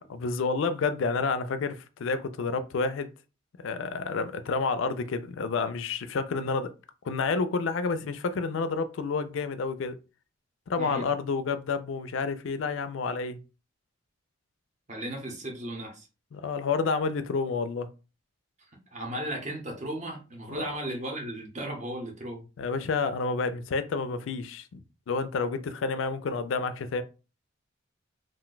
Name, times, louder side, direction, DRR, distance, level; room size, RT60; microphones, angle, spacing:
voice 1, 0.1-3.1 3.6-6.7 7.0-10.0 10.7-13.4 16.3-17.9 20.5-20.6 22.6-27.0, left 4 dB, 65° left, 0.4 m, -29 dB
voice 2, 14.9-16.1 18.9-22.4 22.7-22.8, right 1 dB, 35° right, 0.8 m, -35 dB
2.5 x 2.2 x 3.8 m
head